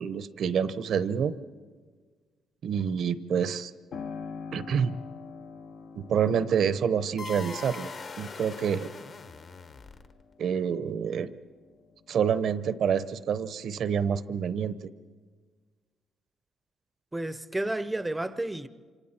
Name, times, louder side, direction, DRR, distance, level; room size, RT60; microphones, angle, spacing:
voice 1, 0.0-1.3 2.6-3.7 4.5-4.9 6.0-7.9 8.2-8.9 10.4-11.3 12.1-14.7, right 7 dB, 60° right, 0.8 m, -27 dB
Piano, 3.9-12.3 12.8-13.8, left 5 dB, 70° left, 1.1 m, -46 dB
sound 1, 7.2-10.3, left 4 dB, 45° left, 1.3 m, -41 dB
voice 2, 17.1-18.7, right 1 dB, 10° right, 0.7 m, -31 dB
27.0 x 26.0 x 4.4 m
cardioid pair, 110°, 0 cm